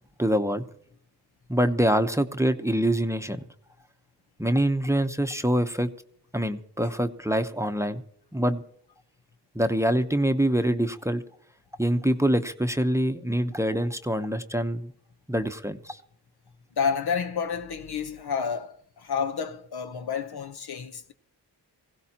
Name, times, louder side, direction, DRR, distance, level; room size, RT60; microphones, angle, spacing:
voice 1, 0.2-0.6 1.5-3.5 4.4-5.9 6.3-8.0 8.3-8.6 9.5-11.2 11.8-14.9 15.3-16.0, equal, 5° right, 0.9 m, -25 dB
voice 2, 16.8-21.1, left 6 dB, 65° left, 0.9 m, -30 dB
22.0 x 16.0 x 2.9 m
cardioid pair, 45°, 42 cm